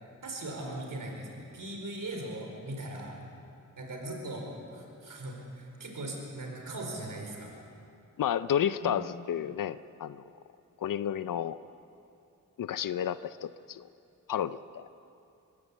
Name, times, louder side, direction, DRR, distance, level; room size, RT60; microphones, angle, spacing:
voice 1, 0.2-3.2 3.8-7.5 8.8-8.9, right 1 dB, 75° right, 1 dB, 4.5 m, -39 dB
voice 2, 8.2-10.2 10.8-11.6 12.6-13.9 14.3-14.9, left 9 dB, 80° left, 14 dB, 0.5 m, -31 dB
21.5 x 16.0 x 8.3 m, 2.6 s
cardioid pair, 65°, 32 cm